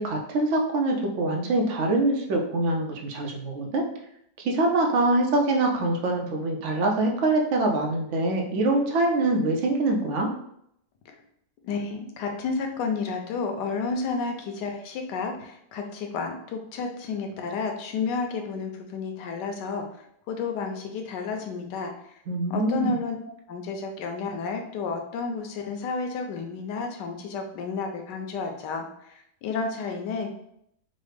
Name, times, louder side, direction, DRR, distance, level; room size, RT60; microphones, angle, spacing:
voice 1, 0.0-3.8 4.4-10.3 22.3-22.9, right 2 dB, 65° right, 1 dB, 0.7 m, -24 dB
voice 2, 11.6-19.8 20.3-21.9 22.5-23.2 23.5-30.3, left 4 dB, 90° left, 4 dB, 1.2 m, -31 dB
4.0 x 2.0 x 3.2 m, 0.73 s
omnidirectional pair, 1.8 m